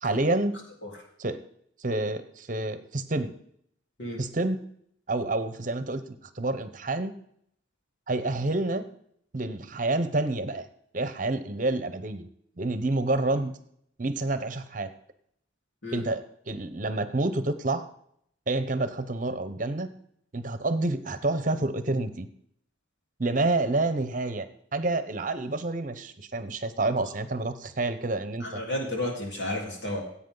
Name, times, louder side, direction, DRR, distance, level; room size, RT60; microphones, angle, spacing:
voice 1, 0.0-0.6 1.2-1.4 1.8-3.3 4.2-4.6 5.1-7.1 8.1-8.9 9.3-10.7 10.9-12.3 12.6-13.5 14.0-14.9 15.9-17.9 18.5-19.9 20.3-22.3 23.2-28.6, right 2 dB, 45° right, 11 dB, 0.8 m, -28 dB
voice 2, 28.4-30.0, left 1 dB, 75° left, -1 dB, 3.8 m, -32 dB
16.0 x 8.5 x 3.9 m, 0.68 s
head